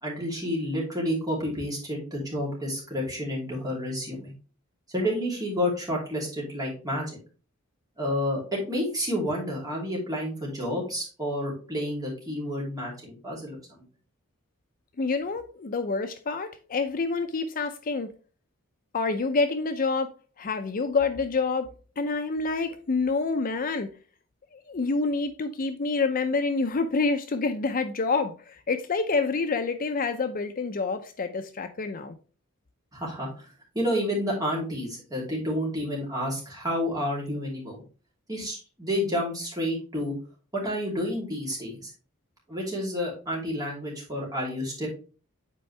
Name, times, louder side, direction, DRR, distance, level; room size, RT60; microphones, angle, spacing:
voice 1, 0.0-4.3 4.9-7.0 8.0-13.8 32.9-33.5 33.7-37.8 38.3-40.1 40.5-41.9 42.5-44.9, equal, 20° right, 2.8 m, -30 dB
voice 2, 15.0-18.1 18.9-21.7 22.0-23.9 24.5-32.1, left 4 dB, 40° left, 0.5 m, -27 dB
8.3 x 4.5 x 3.2 m
head